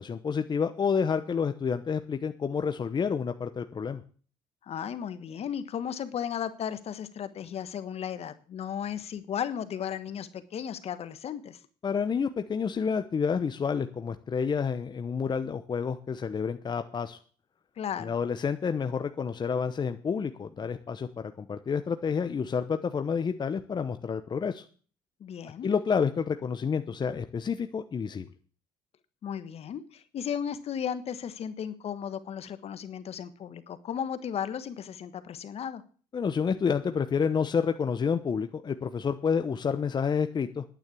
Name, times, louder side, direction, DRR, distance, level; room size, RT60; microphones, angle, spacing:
voice 1, 0.0-4.0 11.8-17.2 18.0-21.1 21.4-24.6 25.6-28.3 36.1-40.6, left 6 dB, 35° left, 9 dB, 0.9 m, -29 dB
voice 2, 4.6-11.6 17.8-18.2 25.2-25.7 29.2-35.8, left 8 dB, 55° left, 13 dB, 1.3 m, -35 dB
9.4 x 9.0 x 8.4 m, 0.41 s
supercardioid pair, 75°, 13 cm